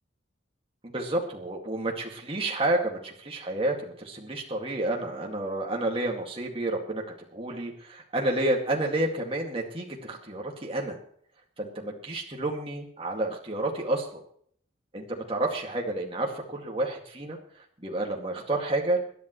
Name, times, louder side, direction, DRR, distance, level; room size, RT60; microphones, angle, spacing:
voice 1, 0.9-7.0 7.3-11.0 11.6-14.2 14.9-17.4 17.8-19.0, right 2 dB, 30° right, 0 dB, 2.1 m, -30 dB
26.0 x 11.0 x 3.1 m, 0.62 s
head